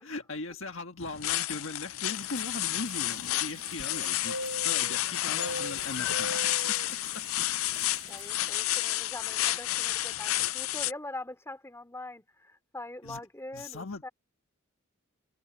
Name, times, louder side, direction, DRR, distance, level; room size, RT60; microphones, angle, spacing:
voice 1, 0.0-6.3 13.0-13.2 13.5-14.0, left 3 dB, 70° left, 1.6 m, -39 dB
sound 1, 1.0-10.9, left 15 dB, 90° left, 0.5 m, -31 dB
sound 2, 2.0-8.6, right 1 dB, 70° right, 1.1 m, -42 dB
voice 2, 8.1-14.1, left 2 dB, 15° left, 3.4 m, -43 dB
head